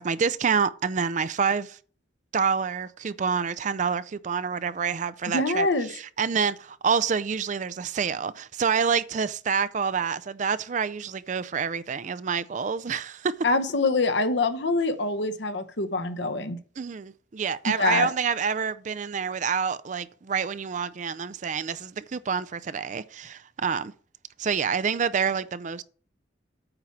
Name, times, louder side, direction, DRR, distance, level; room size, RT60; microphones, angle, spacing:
voice 1, 0.0-1.8 2.3-13.4 16.8-23.9 24.4-25.8, right 6 dB, 40° right, 0.4 m, -27 dB
voice 2, 5.3-5.9 13.4-16.6 17.6-18.1, left 3 dB, 70° left, 0.9 m, -25 dB
8.9 x 4.6 x 7.1 m
head